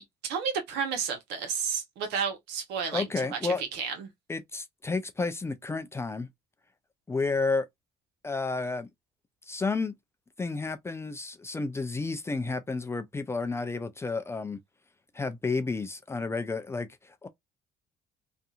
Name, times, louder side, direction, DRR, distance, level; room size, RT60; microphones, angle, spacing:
voice 1, 0.2-3.0 3.3-4.1, right 6 dB, 90° right, 0.9 m, -31 dB
voice 2, 2.9-3.6 4.3-6.3 7.1-7.7 8.2-8.9 9.5-9.9 10.4-14.6 15.1-17.3, left 3 dB, 15° left, 0.4 m, -31 dB
2.7 x 2.4 x 2.3 m
cardioid pair, 110°, 17 cm